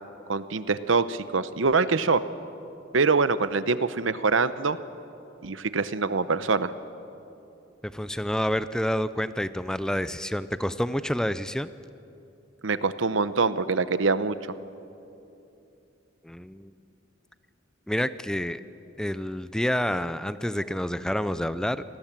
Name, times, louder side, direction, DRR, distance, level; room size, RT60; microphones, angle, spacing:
voice 1, 0.3-2.2 2.9-4.8 5.4-6.7 12.6-14.4, right 4 dB, 75° right, 13 dB, 0.9 m, -24 dB
voice 2, 7.8-11.7 16.2-16.7 17.9-18.6 19.0-21.8, equal, 5° left, 13 dB, 0.5 m, -28 dB
28.0 x 19.5 x 7.5 m, 2.8 s
head